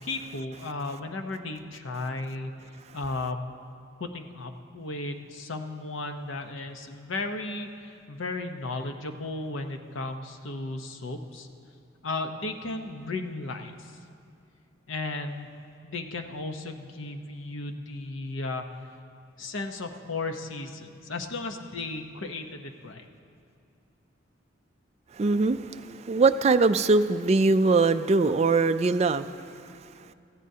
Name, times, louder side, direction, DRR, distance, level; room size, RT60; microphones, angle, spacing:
voice 1, 0.0-2.5 2.9-3.4 4.0-11.5 12.0-13.9 14.9-15.5 15.8-18.6 19.4-23.1, left 2 dB, 75° left, 6 dB, 0.8 m, -35 dB
voice 2, 25.2-29.3, right 3 dB, 30° right, 10 dB, 0.3 m, -22 dB
18.0 x 14.5 x 2.8 m, 2.6 s
head